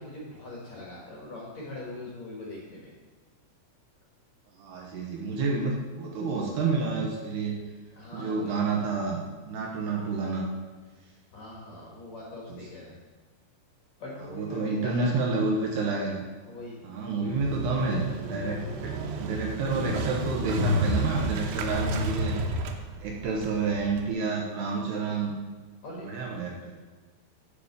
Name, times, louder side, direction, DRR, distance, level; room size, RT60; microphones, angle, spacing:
voice 1, 0.0-2.9 8.0-8.6 11.3-13.0 14.0-15.2 16.5-17.4 21.6-21.9 25.8-26.0, left 1 dB, 55° left, -4 dB, 2.1 m, -41 dB
voice 2, 4.6-7.6 8.1-10.5 12.5-12.6 14.2-16.2 16.8-22.4 23.0-25.3 25.9-26.7, right 4 dB, 70° right, -1 dB, 2.8 m, -29 dB
Motorcycle, 17.3-24.1, right 1 dB, 90° right, 3.5 m, -31 dB
7.6 x 6.7 x 6.9 m, 1.4 s
omnidirectional pair, 5.6 m